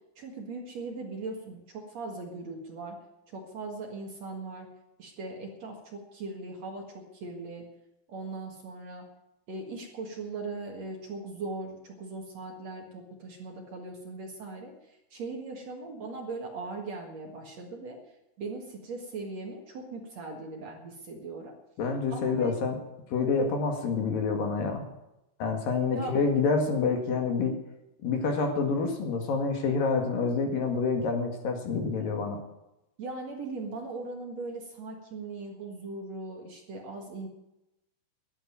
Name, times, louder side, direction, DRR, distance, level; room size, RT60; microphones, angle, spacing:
voice 1, 0.1-2.9 3.3-4.7 5.0-7.6 8.1-9.0 9.5-18.0 18.4-21.5 22.1-22.5 25.9-26.1 33.0-37.3, right 3 dB, 65° right, 1 dB, 1.6 m, -39 dB
voice 2, 21.8-22.8 23.1-24.8 25.4-27.6 28.0-32.4, left 4 dB, 55° left, 3 dB, 3.0 m, -27 dB
12.0 x 10.5 x 9.2 m, 0.90 s
omnidirectional pair, 6.0 m